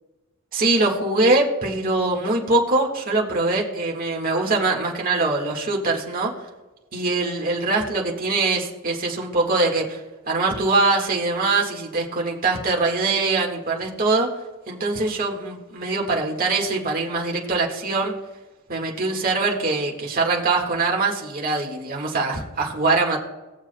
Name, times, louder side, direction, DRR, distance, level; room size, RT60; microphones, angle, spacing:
voice 1, 0.5-6.3 6.9-10.0 10.3-14.3 14.7-18.1 18.7-23.2, right 3 dB, 40° right, -2 dB, 1.7 m, -23 dB
19.0 x 7.3 x 2.2 m, 1.2 s
head